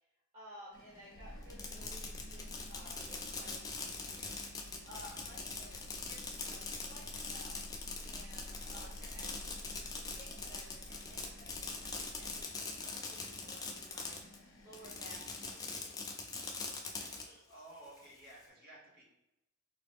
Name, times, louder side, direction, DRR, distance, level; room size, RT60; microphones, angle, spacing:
voice 1, 0.3-4.4 4.9-6.6 6.9-7.6 8.0-9.5 9.9-14.2 14.6-16.3 16.8-17.6, equal, 30° right, -9 dB, 0.8 m, -56 dB
sound 1, 0.7-15.6, left 2 dB, 60° left, 0.6 m, -59 dB
sound 2, 1.1-12.4, equal, 85° right, 0.6 m, -51 dB
Fireworks, 1.4-14.4 14.7-17.2, left 4 dB, 15° left, 0.3 m, -42 dB
voice 2, 4.9-5.2 8.5-9.2 17.1-19.1, right 1 dB, 45° right, -5 dB, 1.2 m, -56 dB
3.8 x 2.0 x 3.4 m, 0.90 s
head